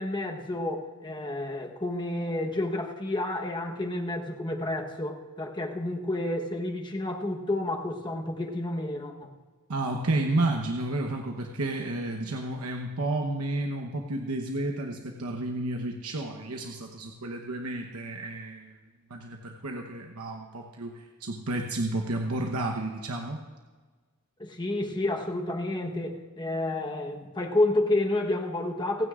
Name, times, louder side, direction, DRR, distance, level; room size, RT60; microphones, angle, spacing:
voice 1, 0.0-9.3 24.4-29.1, left 1 dB, 20° left, 2 dB, 1.1 m, -30 dB
voice 2, 9.7-18.7 19.1-23.4, right 2 dB, 80° right, 2 dB, 1.0 m, -31 dB
28.5 x 9.5 x 2.5 m, 1.4 s
head